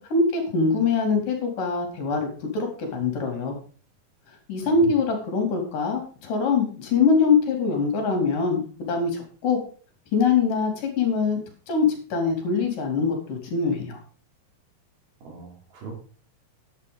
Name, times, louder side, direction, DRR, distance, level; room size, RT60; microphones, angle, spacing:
voice 1, 0.0-3.6 4.5-9.6 10.1-14.0, left 4 dB, 65° left, 4 dB, 4.2 m, -23 dB
voice 2, 15.2-15.9, right 6 dB, 85° right, 1 dB, 5.3 m, -39 dB
10.5 x 8.6 x 5.2 m, 0.41 s
omnidirectional pair, 4.2 m